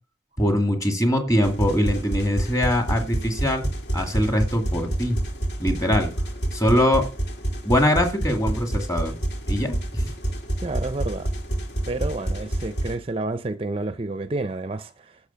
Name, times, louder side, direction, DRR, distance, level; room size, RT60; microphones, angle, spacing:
voice 1, 0.4-3.6 3.9-5.2 5.6-6.1 6.5-7.0 7.6-9.1 9.5-10.1, equal, 20° left, 2.3 m, -22 dB
sound 1, 1.4-13.0, right 1 dB, 70° left, 2.5 m, -28 dB
voice 2, 10.6-11.3 11.9-15.1, right 2 dB, 30° right, 0.5 m, -29 dB
12.0 x 7.0 x 5.7 m
head